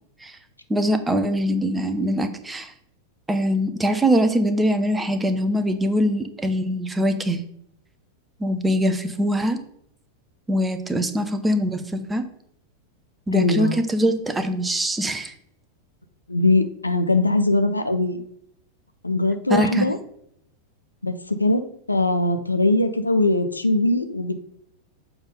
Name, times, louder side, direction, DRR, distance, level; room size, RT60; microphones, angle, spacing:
voice 1, 0.7-2.7 3.3-7.4 8.4-9.6 10.5-12.2 13.3-15.3 19.5-19.8, equal, 10° right, 9 dB, 0.7 m, -22 dB
voice 2, 13.3-13.8 16.3-18.2 19.0-20.0 21.0-24.4, left 2 dB, 85° left, 9 dB, 0.6 m, -21 dB
7.1 x 3.5 x 5.3 m, 0.70 s
figure-of-eight pair, 90°, 0 cm